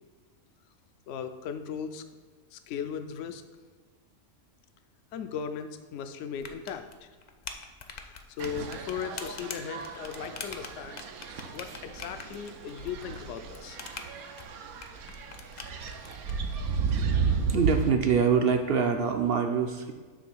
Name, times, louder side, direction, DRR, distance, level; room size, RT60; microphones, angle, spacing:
voice 1, 1.1-2.0 2.5-3.4 5.1-7.1 7.9-11.0 11.5-13.8, left 7 dB, 70° left, 9 dB, 0.8 m, -37 dB
sound 1, 6.4-16.3, left 5 dB, 90° left, 0.3 m, -44 dB
sound 2, 8.4-17.9, right 5 dB, 85° right, 1.2 m, -33 dB
voice 2, 17.5-19.9, right 6 dB, 60° right, 5 dB, 0.6 m, -24 dB
7.6 x 3.2 x 6.1 m, 1.4 s
omnidirectional pair, 1.5 m